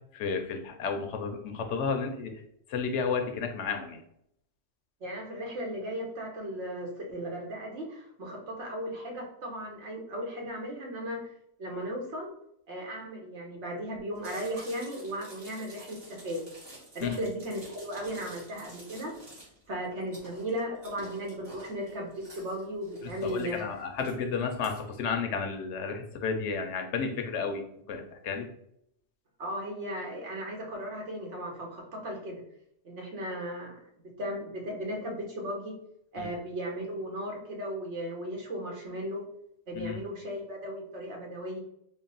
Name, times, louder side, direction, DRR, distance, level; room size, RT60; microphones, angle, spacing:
voice 1, 0.1-2.3 2.7-4.0 17.0-17.2 23.2-27.6 27.9-28.5 36.2-36.3 39.7-40.0, left 5 dB, 90° left, 5 dB, 1.0 m, -32 dB
voice 2, 5.0-11.3 11.6-12.3 12.7-16.4 16.9-19.1 19.7-23.6 24.0-24.1 29.4-32.4 32.8-33.8 34.2-35.7 36.1-39.2 39.7-41.6, equal, 80° right, 0 dB, 1.3 m, -36 dB
Chewing mastication, 14.2-24.8, right 1 dB, 55° right, 1.7 m, -50 dB
3.9 x 2.0 x 3.9 m, 0.74 s
omnidirectional pair, 1.2 m